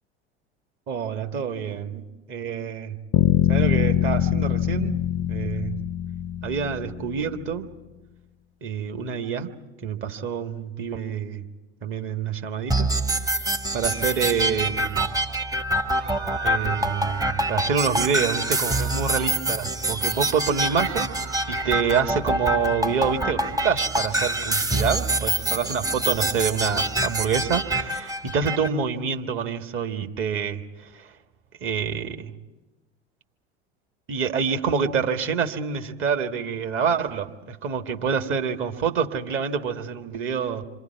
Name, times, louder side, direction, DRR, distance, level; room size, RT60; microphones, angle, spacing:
voice 1, 0.9-3.0 3.5-5.0 5.3-5.8 6.4-7.7 8.6-9.6 9.8-11.4 11.8-12.9 13.7-15.0 16.4-21.1 21.5-30.6 30.9-31.0 31.6-32.3 34.1-40.6, right 6 dB, 40° right, 5 dB, 1.9 m, -27 dB
sound 1, 3.1-7.2, left 11 dB, 30° left, 0.6 m, -23 dB
sound 2, 12.7-28.7, right 1 dB, 10° right, 1.0 m, -26 dB
sound 3, 15.8-17.6 18.2-19.6 20.0-22.3, right 7 dB, 80° right, 2.3 m, -39 dB
28.0 x 25.5 x 4.7 m, 1.1 s
figure-of-eight pair, 80°, 33 cm